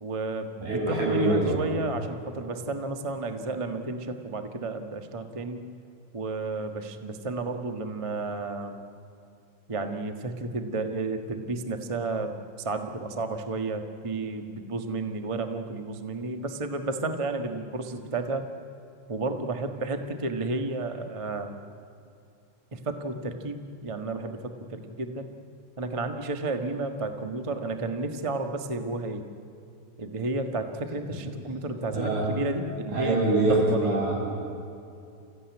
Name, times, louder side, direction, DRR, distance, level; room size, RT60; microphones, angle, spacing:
voice 1, 0.0-5.6 6.1-8.8 9.7-18.5 19.1-21.6 22.7-25.3 25.8-29.2 30.0-34.0, right 2 dB, 55° right, 6 dB, 0.3 m, -32 dB
voice 2, 0.6-1.6 31.9-32.3 32.9-34.2, right 2 dB, 80° right, -4 dB, 8.8 m, -24 dB
29.5 x 16.0 x 9.5 m, 2.6 s
omnidirectional pair, 3.4 m